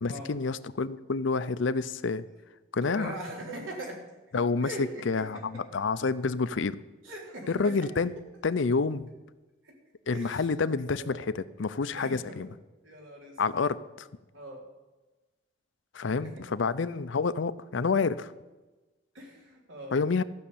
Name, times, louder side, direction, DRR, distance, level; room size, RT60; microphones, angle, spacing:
voice 1, 0.0-2.3 2.7-3.2 4.3-6.8 7.5-8.1 8.4-9.1 10.1-12.5 13.4-14.1 15.9-18.3 19.9-20.2, left 4 dB, 70° left, 15 dB, 0.5 m, -28 dB
voice 2, 2.8-4.0 4.6-5.6 7.0-8.1 9.6-9.7 10.1-10.5 11.0-11.2 11.9-12.4 12.8-13.4 14.3-14.6 16.2-16.3 19.1-20.0, right 1 dB, 85° right, -1 dB, 3.6 m, -41 dB
14.0 x 6.5 x 8.5 m, 1.2 s
head